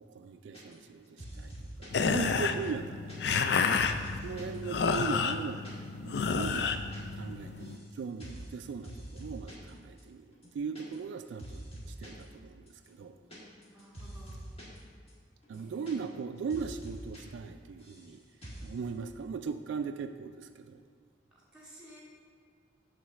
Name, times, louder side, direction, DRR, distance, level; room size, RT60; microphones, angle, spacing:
voice 1, 0.0-1.5 1.8-5.6 6.0-10.3 10.5-13.2 15.5-18.2 18.6-20.8, right 5 dB, 75° right, 8 dB, 0.3 m, -39 dB
sound 1, 0.5-0.9 1.2-2.0 2.4-4.6 4.9-5.0 5.2-5.7 6.0-7.0 7.3-7.9 8.2-8.5 8.8-9.7 10.0-10.1 10.3-11.1 11.4-12.2 12.7-14.8 15.1-15.2 15.4-16.2 16.5-17.2 17.5-18.1 18.4-18.7, right 1 dB, 30° left, 1.4 m, -46 dB
sound 2, 1.9-7.8, left 5 dB, 60° left, 0.4 m, -30 dB
voice 2, 13.7-14.4 15.5-16.0 21.3-22.0, right 1 dB, 5° right, -6 dB, 2.2 m, -55 dB
8.8 x 3.8 x 6.4 m, 2.1 s
head